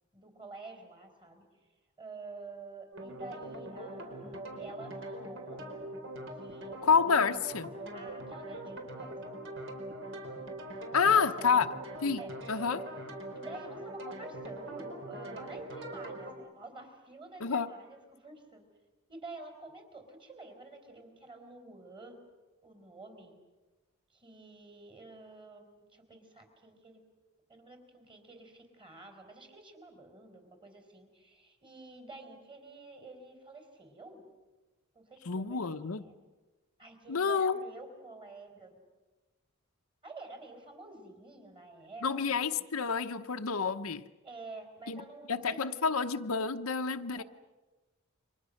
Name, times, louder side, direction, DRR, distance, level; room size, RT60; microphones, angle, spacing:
voice 1, 0.1-1.4 2.0-5.6 6.3-7.4 7.9-9.4 10.9-11.6 12.2-12.3 13.3-18.6 19.1-22.2 22.6-23.4 24.1-27.0 27.5-34.3 34.9-36.2 36.8-38.8 40.0-42.6 44.2-45.8 47.2-47.3, right 3 dB, 25° right, 5 dB, 4.2 m, -49 dB
sound 1, 2.9-16.3, right 1 dB, 60° right, 4.4 m, -42 dB
voice 2, 6.8-7.7 10.9-11.7 12.0-12.2 12.5-12.9 17.4-17.7 35.3-36.0 37.1-37.6 42.0-44.0 44.9-45.0 45.3-47.2, left 5 dB, 85° left, 6 dB, 0.9 m, -28 dB
29.5 x 24.5 x 6.5 m, 1.2 s
head